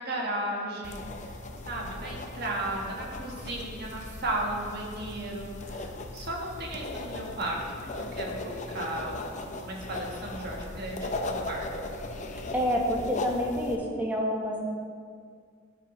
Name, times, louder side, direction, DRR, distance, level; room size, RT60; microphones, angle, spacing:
voice 1, 0.0-1.4 1.6-7.6 7.9-11.7, right 1 dB, 55° right, -1 dB, 1.4 m, -35 dB
sound 1, 0.8-13.7, left 2 dB, 40° left, 0.6 m, -38 dB
voice 2, 12.5-14.6, equal, 10° right, -3 dB, 1.2 m, -28 dB
12.5 x 4.7 x 3.1 m, 2.1 s
head